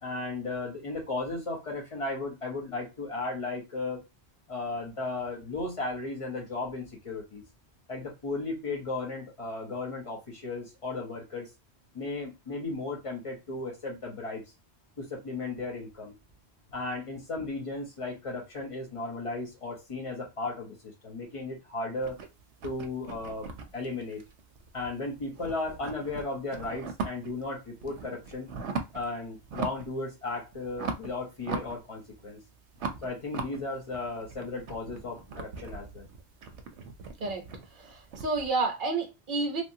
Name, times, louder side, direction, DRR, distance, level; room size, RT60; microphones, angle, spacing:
voice 1, 0.0-4.0 4.5-7.4 7.9-11.5 11.9-14.4 15.0-16.1 16.7-22.2 22.6-23.5 23.7-24.2 24.7-28.5 28.9-32.4 33.0-36.0, left 3 dB, 30° left, 1.1 m, -35 dB
sound 1, 22.0-24.9 25.2-27.4 27.8-29.1 29.4-30.0 30.3-32.3 32.7-38.5, right 4 dB, 85° right, 0.9 m, -39 dB
voice 2, 37.8-39.6, right 3 dB, 50° right, 0.9 m, -30 dB
3.2 x 2.4 x 2.7 m
omnidirectional pair, 1.1 m